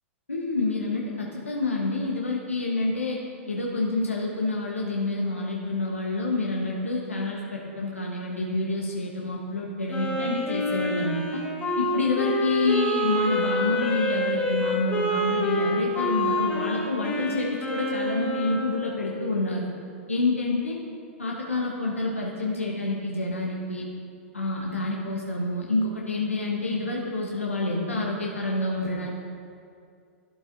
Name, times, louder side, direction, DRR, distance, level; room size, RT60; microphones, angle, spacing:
voice 1, 0.3-3.2 3.5-11.4 11.8-19.7 20.1-20.8 21.2-23.8 24.3-29.1, left 2 dB, 90° left, -2 dB, 1.0 m, -28 dB
Wind instrument woodwind instrument, 9.9-18.8, left 1 dB, 20° left, 2.4 m, -27 dB
11.5 x 11.0 x 2.6 m, 2.3 s
figure-of-eight pair, 100°, 7 cm